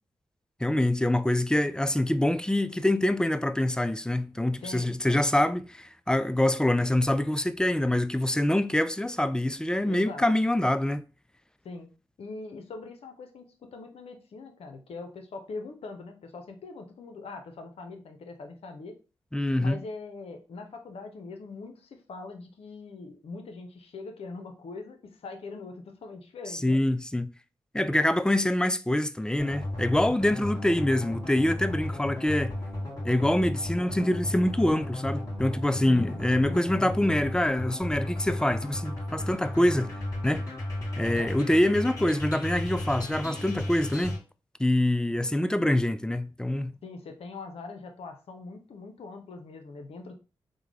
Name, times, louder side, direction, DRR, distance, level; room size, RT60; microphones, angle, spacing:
voice 1, 0.6-11.0 19.3-19.8 26.6-27.3 27.7-32.5 33.0-39.9 40.2-40.4 41.0-44.2 44.6-46.7, left 1 dB, 5° left, 0.3 m, -25 dB
voice 2, 4.6-5.3 9.8-10.3 11.6-11.9 12.2-19.0 19.6-26.8 35.9-36.7 41.0-41.4 46.8-50.1, left 3 dB, 75° left, 0.7 m, -42 dB
sound 1, 29.4-44.2, left 1 dB, 30° left, 2.0 m, -34 dB
3.6 x 2.2 x 3.3 m
supercardioid pair, 40°, 10 cm